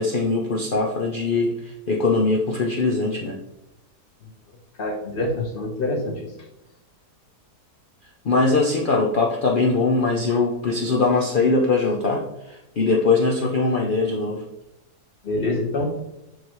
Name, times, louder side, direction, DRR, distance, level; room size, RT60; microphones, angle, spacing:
voice 1, 0.0-3.4 8.2-14.4, left 3 dB, 70° left, -1 dB, 0.4 m, -21 dB
voice 2, 4.8-6.3 10.3-10.4 15.2-15.9, left 2 dB, 35° left, -1 dB, 1.1 m, -26 dB
9.2 x 3.4 x 3.0 m, 0.88 s
omnidirectional pair, 1.8 m